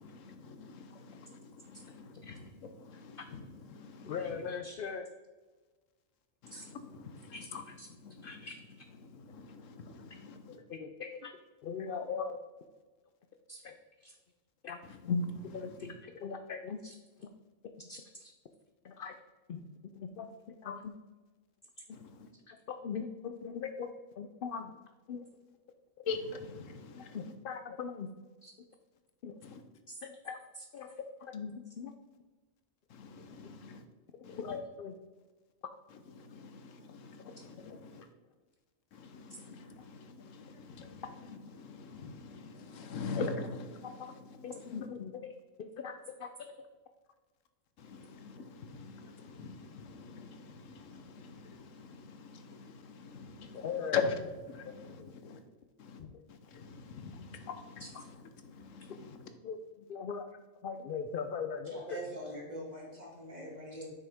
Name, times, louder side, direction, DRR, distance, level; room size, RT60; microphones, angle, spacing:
voice 1, 0.5-1.0 3.8-4.1 6.4-6.5 9.9-10.0 15.1-15.2 26.1-26.8 33.0-33.8 37.3-37.4 39.2-39.6 40.4-40.5 40.8-41.0 41.6-43.8 47.9-48.1 48.4-48.5 48.7-49.1 49.4-50.3 50.9-51.0 52.3-52.6 53.1-53.5 53.9-54.0 54.5-54.7 55.2-55.4 56.5-57.8 58.8-58.9, left 6 dB, 85° left, 1.2 m, -39 dB
voice 2, 4.1-5.1 6.5-6.7 7.3-7.9 8.2-8.6 10.5-12.4 13.5-13.8 14.0-14.2 14.6-14.8 15.5-17.3 17.8-18.3 18.8-19.2 19.5-19.7 19.9-21.0 21.9-22.0 22.5-22.6 22.8-24.7 25.1-25.2 27.1-28.1 28.4-28.5 29.2-29.3 29.9-31.9 34.3-35.0 37.4-37.8 39.3-39.4 44.0-44.1 44.4-45.3 45.6-46.7 53.5-54.0 54.6-55.1 56.0-56.2 57.8-58.0 59.4-62.0, left 6 dB, 60° left, 0.6 m, -41 dB
voice 3, 61.7-63.9, right 1 dB, 35° right, 2.3 m, -43 dB
7.7 x 6.3 x 3.5 m
omnidirectional pair, 1.3 m